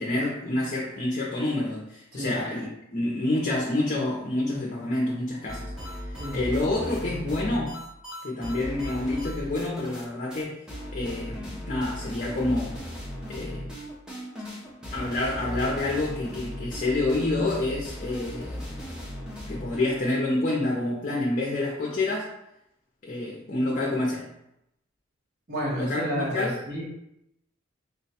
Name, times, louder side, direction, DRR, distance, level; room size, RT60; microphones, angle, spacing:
voice 1, 0.0-5.7 6.1-7.8 8.2-10.6 10.9-12.8 13.3-13.7 14.9-18.7 19.5-22.3 23.0-24.3 25.7-26.6, left 2 dB, 40° left, -3 dB, 0.6 m, -28 dB
sound 1, 5.5-10.0 10.3-10.4 10.7-19.9, equal, 5° right, 0.7 m, -37 dB
voice 2, 25.5-26.8, equal, 50° right, -4 dB, 1.2 m, -31 dB
3.7 x 2.2 x 4.1 m, 0.82 s
head